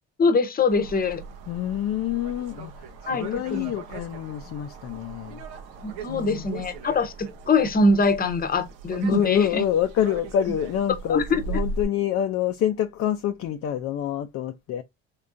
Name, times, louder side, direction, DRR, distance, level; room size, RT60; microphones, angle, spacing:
voice 1, 0.2-1.2 3.1-3.7 5.8-9.6 11.1-11.4, left 3 dB, 25° left, 0.8 m, -23 dB
sound 1, 0.7-11.9, right 4 dB, 80° right, 0.9 m, -39 dB
voice 2, 1.5-2.7 3.1-5.4 6.1-6.5 9.1-14.8, left 10 dB, 45° left, 0.5 m, -26 dB
3.6 x 3.2 x 2.5 m
supercardioid pair, 80°, 33 cm